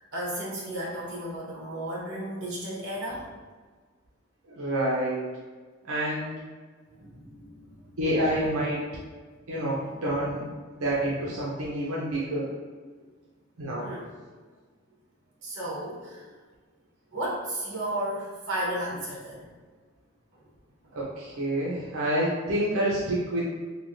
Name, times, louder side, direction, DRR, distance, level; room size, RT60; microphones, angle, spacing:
voice 1, 0.1-3.3 7.0-8.0 10.3-10.4 13.8-14.1 15.4-16.3 17.1-19.5 20.3-20.4, right 1 dB, 55° right, -6 dB, 1.1 m, -34 dB
voice 2, 4.6-5.2 5.8-6.4 8.0-8.8 9.5-10.5 10.8-12.5 13.6-13.9 20.9-23.5, right 1 dB, 80° right, -6 dB, 0.6 m, -28 dB
3.3 x 2.7 x 2.6 m, 1.4 s
head